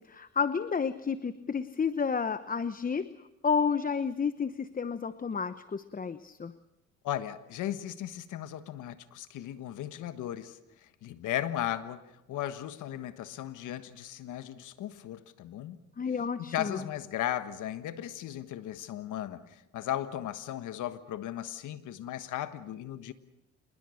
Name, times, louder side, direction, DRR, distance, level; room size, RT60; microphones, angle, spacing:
voice 1, 0.1-3.1 3.4-6.5 16.0-16.8, left 6 dB, 30° left, 0.9 m, -31 dB
voice 2, 7.0-12.0 12.3-15.8 16.5-23.1, left 12 dB, 85° left, 1.5 m, -36 dB
27.5 x 21.0 x 6.5 m
cardioid pair, 90°, 30 cm